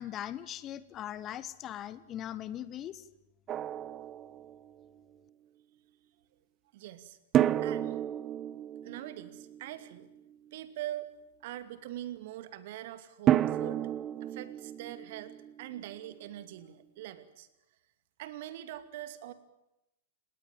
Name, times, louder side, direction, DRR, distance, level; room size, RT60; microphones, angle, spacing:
voice 1, 0.0-3.1, left 11 dB, 30° left, 16 dB, 1.4 m, -40 dB
Drum, 3.5-4.9 7.3-10.3 13.3-16.1, right 11 dB, 30° right, 0.9 m, -31 dB
voice 2, 6.7-7.2 7.6-8.0 8.8-10.1 10.5-11.1 11.4-13.9 14.2-17.5 18.2-19.3, right 13 dB, 50° right, 12 dB, 2.5 m, -43 dB
30.0 x 18.5 x 9.1 m, 0.91 s
figure-of-eight pair, 100°, 0 cm